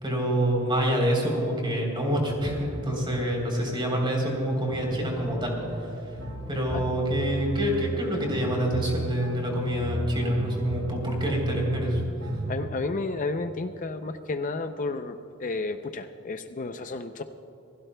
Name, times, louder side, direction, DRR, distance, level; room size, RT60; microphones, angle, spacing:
voice 1, 0.0-5.5 6.5-12.0, equal, 20° right, 0 dB, 3.5 m, -26 dB
sound 1, 4.7-12.6, right 2 dB, 85° right, 3.4 m, -35 dB
voice 2, 12.5-17.2, left 3 dB, 35° left, 8 dB, 0.5 m, -32 dB
27.5 x 16.0 x 2.3 m, 3.0 s
head